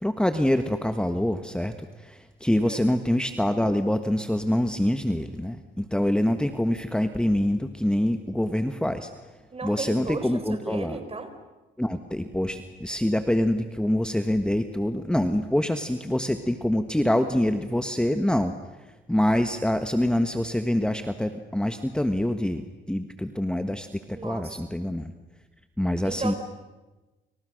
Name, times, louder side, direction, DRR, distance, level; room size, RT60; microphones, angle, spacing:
voice 1, 0.0-9.1 9.6-11.0 11.8-18.5 19.1-25.1 25.8-26.3, left 1 dB, 5° left, 8 dB, 1.5 m, -25 dB
voice 2, 2.6-2.9 9.5-11.3 24.1-24.6 26.0-26.4, right 3 dB, 30° right, 9 dB, 4.3 m, -35 dB
30.0 x 28.5 x 6.6 m, 1.1 s
cardioid pair, 90°, 20 cm